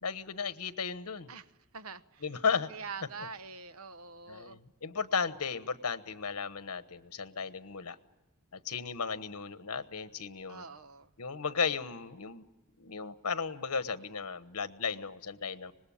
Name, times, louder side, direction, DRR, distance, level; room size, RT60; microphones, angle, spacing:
voice 1, 0.0-1.3 2.2-2.7 4.3-8.0 8.5-10.6 11.2-12.4 12.8-15.7, left 5 dB, 80° left, 12 dB, 1.2 m, -35 dB
voice 2, 1.7-2.2 2.7-4.6 10.5-11.1, right 5 dB, 70° right, 12 dB, 1.1 m, -44 dB
25.5 x 20.0 x 8.6 m, 1.1 s
head